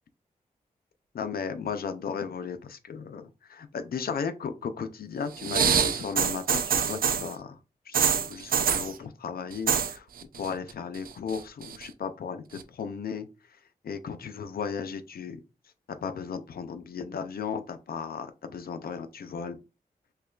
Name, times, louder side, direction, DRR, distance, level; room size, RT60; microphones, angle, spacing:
voice 1, 1.1-7.6 7.9-10.0 10.4-13.3 13.8-15.4 15.9-19.6, left 6 dB, 80° left, 0.5 m, -35 dB
sound 1, 5.4-7.3 7.9-8.9 9.5-9.9 10.2-10.7 11.0-11.8 12.6-12.7, right 7 dB, 70° right, 0.4 m, -25 dB
5.3 x 2.2 x 2.3 m
cardioid pair, 50°, 15 cm